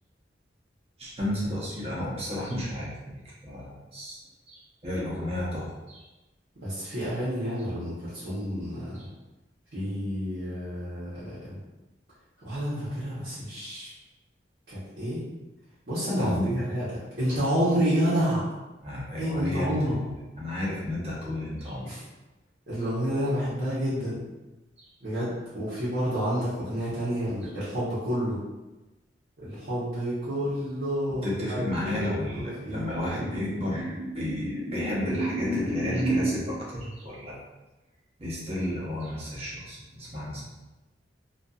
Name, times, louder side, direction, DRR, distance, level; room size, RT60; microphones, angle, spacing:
voice 1, 1.0-4.2 4.5-6.0 8.9-9.0 16.2-16.6 18.8-20.1 20.4-21.9 24.8-24.9 31.2-37.4 38.2-40.4, equal, 35° right, -5 dB, 0.8 m, -31 dB
voice 2, 6.6-9.1 9.7-11.6 12.4-13.9 14.7-15.2 15.9-16.3 16.7-18.5 19.2-20.0 21.8-22.0 22.7-24.2 25.0-28.4 29.4-31.6 31.8-32.9, equal, 70° right, -12 dB, 1.0 m, -29 dB
2.6 x 2.4 x 2.4 m, 1.1 s
head